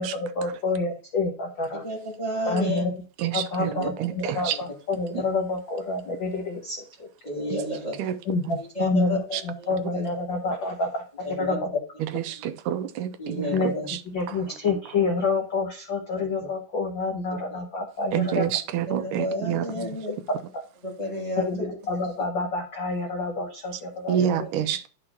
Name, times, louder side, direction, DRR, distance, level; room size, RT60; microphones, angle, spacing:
voice 1, 0.0-1.8 2.4-2.9 3.3-7.1 8.2-11.7 13.5-18.5 20.3-20.4 21.4-24.5, left 3 dB, 90° left, 1.0 m, -28 dB
voice 2, 1.7-2.8 3.6-3.9 4.3-4.6 5.1-5.2 7.2-8.1 8.6-10.0 11.2-11.6 12.3-12.5 13.2-13.9 14.3-14.7 16.1-16.5 17.5-17.6 18.9-20.2 20.8-21.7 23.9-24.4, equal, 15° left, 2.3 m, -33 dB
voice 3, 3.2-4.6 7.5-7.6 8.0-8.2 9.3-9.4 12.1-13.5 13.9-14.0 18.1-19.7 24.1-24.9, right 10 dB, 80° right, 2.1 m, -27 dB
11.0 x 6.6 x 2.9 m
omnidirectional pair, 3.7 m